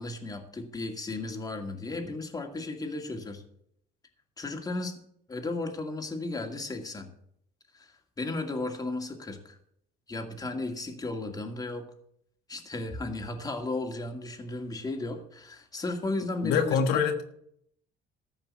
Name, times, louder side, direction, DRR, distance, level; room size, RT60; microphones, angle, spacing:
voice 1, 0.0-3.4 4.4-5.0 5.3-7.1 7.7-9.6 10.1-11.9 12.5-17.0, left 2 dB, 20° left, 4 dB, 2.1 m, -35 dB
voice 2, 16.4-17.2, left 6 dB, 85° left, 5 dB, 1.4 m, -25 dB
14.0 x 5.4 x 8.5 m, 0.69 s
cardioid pair, 110°, 17 cm